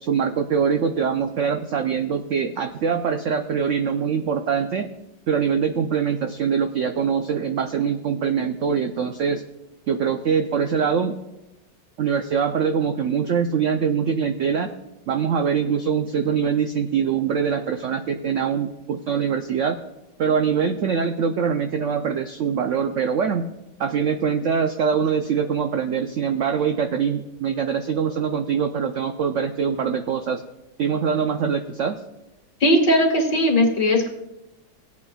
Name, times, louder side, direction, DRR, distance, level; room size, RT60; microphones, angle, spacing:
voice 1, 0.0-4.9 5.3-9.4 9.9-11.2 12.0-14.7 15.1-19.8 20.2-23.5 23.8-30.4 30.8-32.0, right 6 dB, 85° right, 6 dB, 0.6 m, -23 dB
voice 2, 32.6-34.1, equal, 70° left, 0 dB, 2.5 m, -18 dB
18.5 x 8.3 x 2.3 m, 0.97 s
omnidirectional pair, 1.9 m